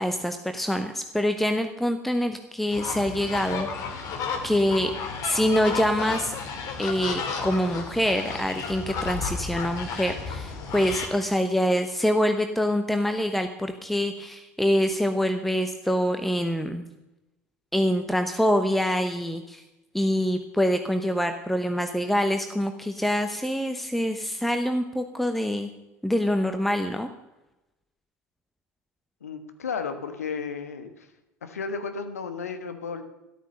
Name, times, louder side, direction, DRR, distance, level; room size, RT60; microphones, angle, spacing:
voice 1, 0.0-3.7 3.9-4.1 4.4-4.9 5.2-6.3 6.8-16.8 17.7-19.6 19.9-25.7 26.0-27.1, equal, ahead, 7 dB, 1.0 m, -25 dB
sound 1, 2.7-11.1, left 5 dB, 45° left, 2.7 m, -33 dB
voice 2, 29.2-31.1 31.4-33.0, left 5 dB, 75° left, 8 dB, 1.4 m, -33 dB
13.0 x 12.0 x 6.5 m, 0.97 s
figure-of-eight pair, 70°, 8 cm